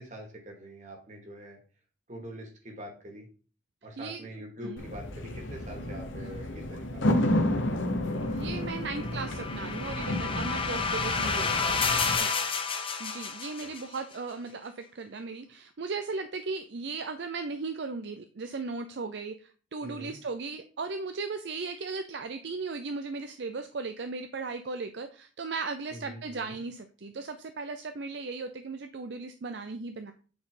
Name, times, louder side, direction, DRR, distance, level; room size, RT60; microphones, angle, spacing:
voice 1, 0.0-1.6 2.1-3.3 3.8-7.5 11.2-11.8 12.1-12.4 13.6-13.7 19.8-20.1 25.9-26.6, equal, 40° right, 1 dB, 2.2 m, -44 dB
voice 2, 4.0-4.3 4.6-4.8 8.3-11.4 12.1-12.3 13.0-30.1, right 4 dB, 60° right, 8 dB, 0.5 m, -37 dB
sound 1, 4.8-12.2, left 1 dB, 85° left, 1.1 m, -31 dB
sound 2, 8.7-14.0, left 5 dB, 30° left, 0.7 m, -30 dB
8.4 x 4.6 x 3.8 m, 0.38 s
head